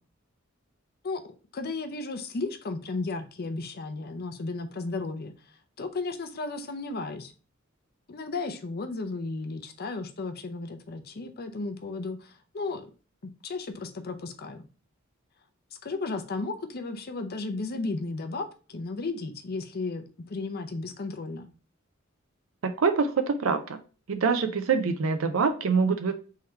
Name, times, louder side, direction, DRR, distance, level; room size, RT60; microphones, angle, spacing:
voice 1, 1.5-5.3 5.8-7.3 8.1-12.9 13.4-14.7 15.8-21.5, left 3 dB, 50° left, 7 dB, 0.6 m, -34 dB
voice 2, 22.8-23.8 24.1-26.1, right 5 dB, 90° right, 8 dB, 0.5 m, -25 dB
3.7 x 3.2 x 4.3 m, 0.36 s
head